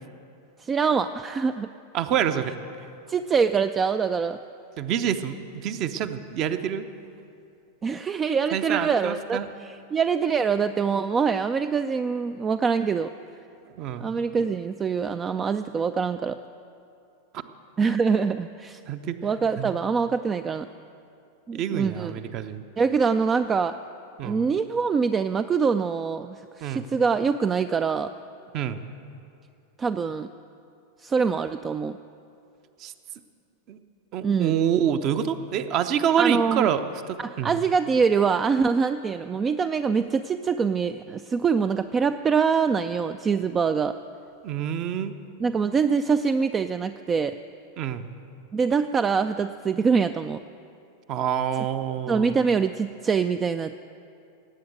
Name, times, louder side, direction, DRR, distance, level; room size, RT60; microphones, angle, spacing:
voice 1, 0.6-1.7 3.1-4.4 7.8-13.1 14.0-16.4 17.8-18.8 19.2-20.7 21.5-22.1 22.8-23.8 24.2-28.1 29.8-30.3 31.0-32.0 34.2-34.6 36.2-36.7 37.2-44.0 45.4-47.4 48.5-50.4 52.1-53.8, right 5 dB, 20° right, 11 dB, 0.3 m, -24 dB
voice 2, 1.9-2.5 4.8-6.9 8.5-9.5 13.8-14.1 18.9-19.2 19.5-19.7 21.6-22.6 24.2-24.5 26.6-26.9 28.5-28.8 32.8-32.9 33.7-33.8 34.1-37.6 44.4-45.1 47.8-48.1 51.1-52.3, right 9 dB, 40° right, 10 dB, 0.7 m, -27 dB
18.0 x 8.5 x 7.8 m, 2.6 s
figure-of-eight pair, 90°, 0 cm